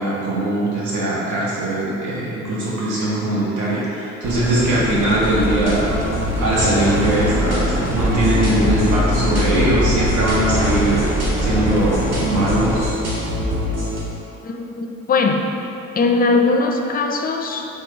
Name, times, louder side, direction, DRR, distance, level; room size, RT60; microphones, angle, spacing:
voice 1, 0.0-5.8 6.4-11.1 11.4-13.0, right 1 dB, 75° right, -7 dB, 1.0 m, -20 dB
sound 1, 4.2-12.9, right 1 dB, 5° right, 0.6 m, -27 dB
sound 2, 5.2-14.0, left 1 dB, 55° right, 1.4 m, -23 dB
voice 2, 14.4-15.4 15.9-17.7, left 3 dB, 30° left, 3 dB, 0.4 m, -20 dB
4.5 x 2.4 x 4.6 m, 3.0 s
cardioid pair, 90°, 30 cm